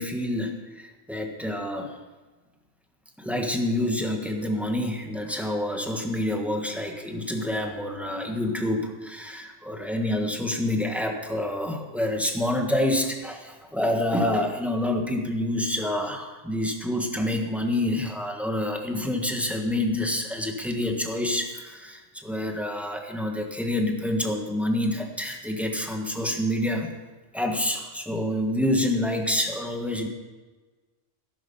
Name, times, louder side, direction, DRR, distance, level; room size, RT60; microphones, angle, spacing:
voice 1, 0.0-1.9 3.2-26.9 27.3-30.1, left 1 dB, ahead, 2 dB, 1.4 m, -27 dB
12.5 x 11.0 x 5.6 m, 1.3 s
omnidirectional pair, 1.4 m